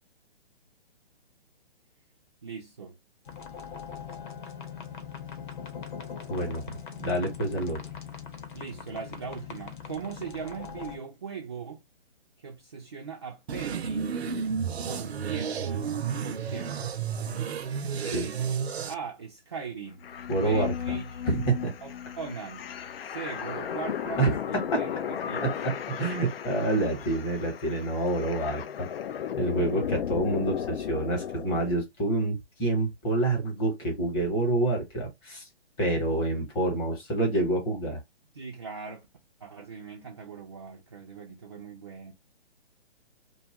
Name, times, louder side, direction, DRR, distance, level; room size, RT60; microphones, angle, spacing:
voice 1, 2.4-2.9 8.5-11.8 12.4-14.1 14.8-15.9 16.2-16.8 17.3-17.4 18.0-18.6 18.9-21.3 21.8-22.7 23.0-25.5 38.4-39.1 39.4-42.1, right 6 dB, 25° right, 0.4 m, -40 dB
Scanner Reel, 3.2-11.0, left 7 dB, 50° left, 0.9 m, -41 dB
voice 2, 6.3-6.6 7.0-7.8 18.1-18.3 20.3-21.0 21.2-21.7 24.2-24.4 24.7-24.8 25.4-28.9 29.4-35.5 35.8-38.0, right 2 dB, 15° left, 1.0 m, -27 dB
sound 1, 13.5-18.9, right 6 dB, 75° right, 0.7 m, -31 dB
sound 2, 20.0-31.7, left 8 dB, 65° left, 0.5 m, -35 dB
2.7 x 2.3 x 2.7 m
hypercardioid pair, 150°, 32 cm